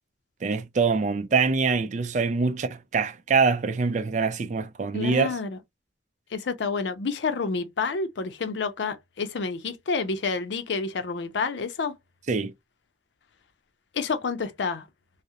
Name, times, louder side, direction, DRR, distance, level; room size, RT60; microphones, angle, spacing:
voice 1, 0.4-5.4 12.3-12.5, right 4 dB, 40° right, 0.4 m, -24 dB
voice 2, 4.9-5.6 6.3-11.9 13.9-14.9, left 4 dB, 90° left, 0.5 m, -29 dB
2.4 x 2.0 x 2.7 m
head